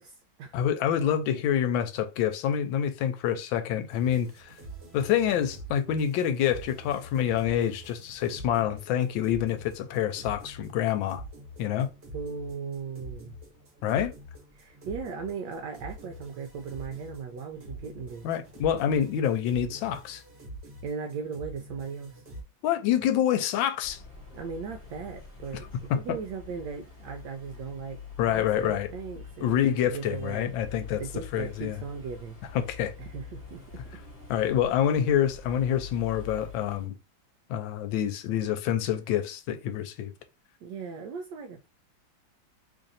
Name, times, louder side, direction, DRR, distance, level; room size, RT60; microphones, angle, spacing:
voice 1, 0.0-0.6 12.1-13.4 13.9-14.1 14.5-18.3 20.8-22.2 24.3-25.7 25.9-30.5 31.0-32.4 33.0-33.6 40.6-41.7, right 5 dB, 75° right, 1.1 m, -38 dB
voice 2, 0.5-4.5 4.9-11.2 11.6-11.9 13.8-14.1 18.2-20.2 22.6-24.0 25.9-26.0 28.2-28.9 29.4-31.0 31.3-31.8 32.5-32.9 34.3-36.9 37.5-40.1, left 10 dB, 80° left, 1.3 m, -27 dB
sound 1, 3.9-22.4, right 1 dB, 40° right, 1.2 m, -46 dB
sound 2, 23.8-36.9, left 5 dB, 20° left, 1.2 m, -46 dB
3.2 x 2.5 x 4.0 m
omnidirectional pair, 2.1 m